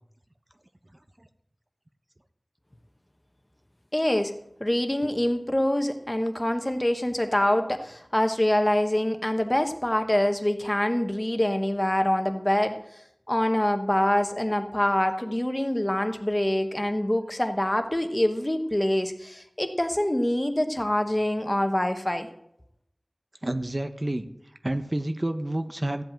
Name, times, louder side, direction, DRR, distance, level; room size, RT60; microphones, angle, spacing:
voice 1, 3.9-4.3 4.6-12.8 13.3-22.3, left 1 dB, 25° left, 7 dB, 1.3 m, -25 dB
voice 2, 23.4-24.3 24.6-26.0, right 1 dB, 40° right, 9 dB, 0.9 m, -29 dB
14.5 x 5.4 x 8.9 m, 0.76 s
wide cardioid pair, 45°, 0 cm